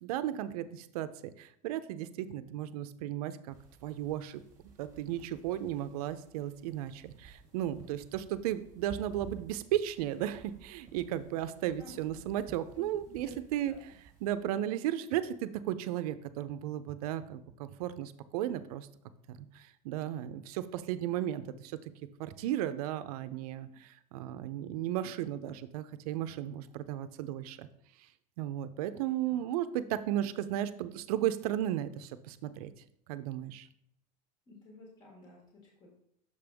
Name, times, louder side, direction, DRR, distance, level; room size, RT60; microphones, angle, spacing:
voice 1, 0.0-3.5 3.8-4.4 4.8-13.7 14.2-18.9 19.3-21.8 22.2-27.7 28.4-32.7 33.1-33.7, right 12 dB, 90° right, 13 dB, 0.5 m, -35 dB
sound 1, 3.5-14.4, right 5 dB, 20° right, 1.4 m, -54 dB
voice 2, 11.8-12.2 12.7-12.9 13.2-13.4 13.6-13.8 14.4-14.6 28.9-29.0 29.3-29.4 34.5-35.9, left 1 dB, 20° left, -2 dB, 1.4 m, -53 dB
6.6 x 5.2 x 3.4 m, 0.74 s
supercardioid pair, 180°, 19 cm